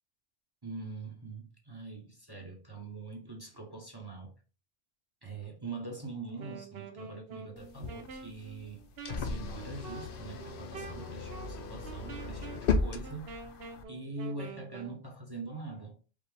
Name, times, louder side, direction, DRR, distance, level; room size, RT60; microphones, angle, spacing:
voice 1, 0.6-4.3 5.2-8.8 9.1-13.4 13.9-16.0, right 3 dB, 25° right, 1.0 m, -43 dB
Wind instrument woodwind instrument, 6.3-15.0, right 4 dB, 75° right, 1.0 m, -47 dB
sound 1, 7.6-13.8, left 4 dB, 65° left, 0.8 m, -36 dB
5.0 x 2.9 x 3.4 m
omnidirectional pair, 1.0 m